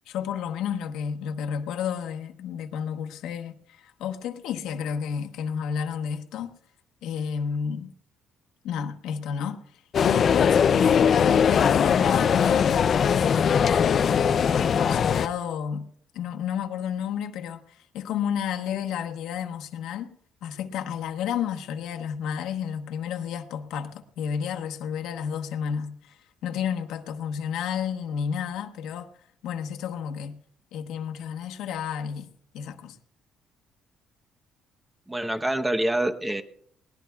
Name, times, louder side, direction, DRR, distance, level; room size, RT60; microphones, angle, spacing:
voice 1, 0.1-6.5 7.0-7.9 8.6-13.6 14.1-15.9 16.1-20.1 20.4-29.1 29.4-30.4 30.7-33.0, left 8 dB, 85° left, 1.1 m, -31 dB
sound 1, 9.9-15.3, left 7 dB, 45° left, 0.4 m, -20 dB
voice 2, 35.1-36.4, right 1 dB, 10° right, 0.9 m, -26 dB
21.0 x 18.5 x 2.3 m
cardioid pair, 125°, 0 cm